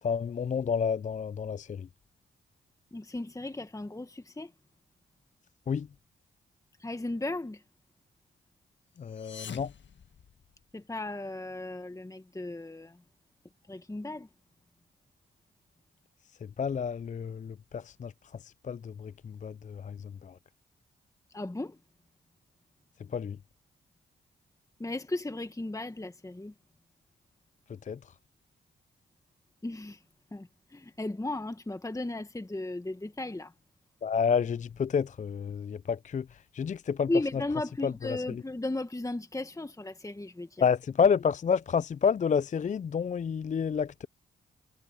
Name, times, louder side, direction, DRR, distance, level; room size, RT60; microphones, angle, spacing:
voice 1, 0.0-1.9 5.7-5.9 9.0-9.7 16.4-20.4 23.0-23.4 27.7-28.1 34.0-37.1 37.8-38.4 40.6-44.1, left 6 dB, 35° left, 0.4 m, -30 dB
voice 2, 2.9-4.5 6.8-7.6 10.7-13.0 13.7-14.3 21.3-21.8 24.8-26.5 29.6-30.0 30.3-33.5 37.1-40.6, left 2 dB, 15° left, 1.5 m, -35 dB
sound 1, 9.0-10.9, left 7 dB, 60° left, 1.6 m, -47 dB
supercardioid pair, 50°, 21 cm